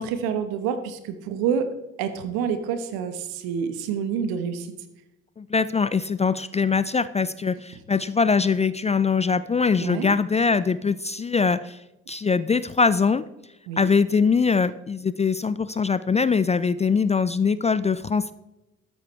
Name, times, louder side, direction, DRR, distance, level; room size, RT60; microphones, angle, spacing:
voice 1, 0.0-1.7 2.0-4.7 9.8-10.1 13.7-13.9, right 7 dB, 70° right, 9 dB, 1.2 m, -27 dB
voice 2, 5.4-11.8 12.1-13.3 13.8-18.3, left 5 dB, 20° left, 15 dB, 0.4 m, -22 dB
13.0 x 9.5 x 3.3 m, 0.96 s
figure-of-eight pair, 40°, 39 cm